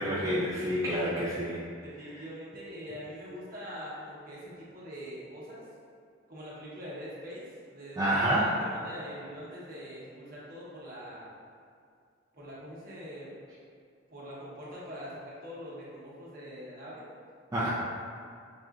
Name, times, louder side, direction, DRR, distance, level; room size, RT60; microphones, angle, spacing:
voice 1, 0.0-1.6 8.0-8.5 17.5-17.7, right 1 dB, 15° right, -9 dB, 0.4 m, -28 dB
voice 2, 1.8-5.6 6.3-11.3 12.3-13.3 14.1-17.1 17.6-17.7, equal, 45° right, -7 dB, 1.0 m, -43 dB
6.0 x 2.4 x 2.4 m, 2.2 s
head